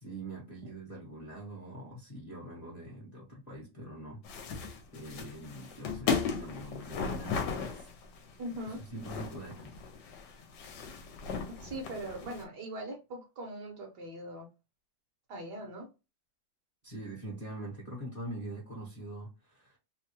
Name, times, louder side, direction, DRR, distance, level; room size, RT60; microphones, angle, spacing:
voice 1, 0.0-4.2 4.9-7.9 8.6-9.7 16.8-19.8, right 1 dB, 30° left, 0.9 m, -43 dB
sound 1, 4.2-12.4, left 5 dB, 70° left, 1.2 m, -37 dB
voice 2, 8.4-8.8 11.4-14.5 15.3-15.9, right 1 dB, 65° right, 1.4 m, -41 dB
3.5 x 2.2 x 2.8 m
omnidirectional pair, 2.1 m